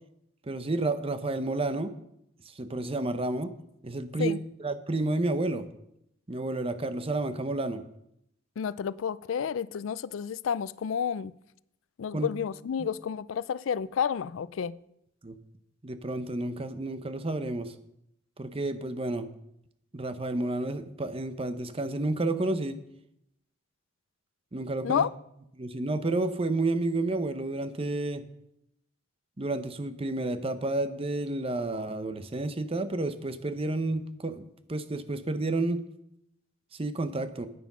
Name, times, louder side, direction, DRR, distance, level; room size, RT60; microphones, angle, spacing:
voice 1, 0.5-1.9 2.6-3.5 3.8-5.7 6.3-7.8 12.1-12.3 12.8-12.9 15.2-15.4 15.8-17.7 18.4-19.3 19.9-22.8 24.5-25.0 25.6-28.2 29.4-35.9 36.8-37.5, right 2 dB, 30° right, 11 dB, 0.7 m, -30 dB
voice 2, 8.6-11.3 12.0-14.8 24.8-25.1, left 7 dB, 90° left, 19 dB, 0.4 m, -30 dB
9.4 x 9.3 x 6.0 m, 0.80 s
head